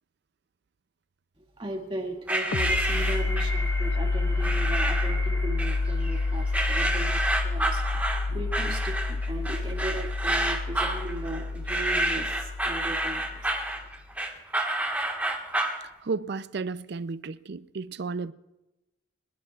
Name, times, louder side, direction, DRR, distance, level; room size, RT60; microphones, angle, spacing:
voice 1, 1.4-13.4, right 1 dB, 30° right, 2.2 m, -37 dB
sound 1, 2.3-3.6 4.4-5.2 5.6-6.2 6.5-15.8, right 1 dB, 10° right, 1.6 m, -29 dB
sound 2, 2.5-13.9, left 3 dB, 85° left, 0.5 m, -29 dB
sound 3, 2.6-9.5, right 1 dB, 15° left, 3.3 m, -41 dB
voice 2, 16.0-18.3, right 4 dB, 60° right, 0.5 m, -33 dB
23.5 x 21.0 x 2.4 m
head